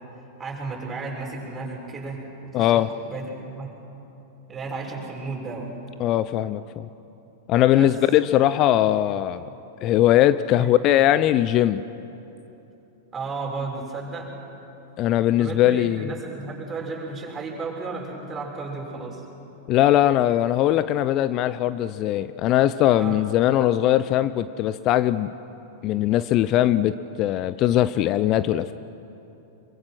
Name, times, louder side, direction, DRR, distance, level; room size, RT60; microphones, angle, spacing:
voice 1, 0.4-3.7 4.5-5.7 7.7-8.0 10.5-10.7 13.1-14.3 15.4-19.2 23.0-23.4, right 3 dB, 20° right, -1 dB, 6.6 m, -33 dB
voice 2, 2.5-2.9 6.0-6.9 7.5-9.5 9.8-11.8 15.0-16.1 19.7-25.3 25.8-28.7, left 13 dB, 40° left, 14 dB, 0.6 m, -20 dB
26.0 x 23.5 x 6.2 m, 2.9 s
figure-of-eight pair, 95°, 0 cm